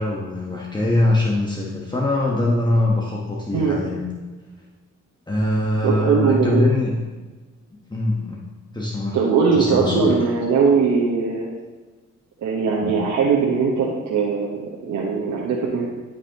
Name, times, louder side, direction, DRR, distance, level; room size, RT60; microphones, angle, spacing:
voice 1, 0.0-4.1 5.3-7.0 7.9-8.4 8.7-9.2 9.5-10.3 12.8-13.0, left 1 dB, 15° left, -4 dB, 1.2 m, -22 dB
voice 2, 5.8-6.6 9.1-11.5 12.4-15.9, right 5 dB, 70° right, -3 dB, 1.2 m, -20 dB
12.5 x 5.3 x 3.0 m, 1.3 s
cardioid pair, 90°, 30 cm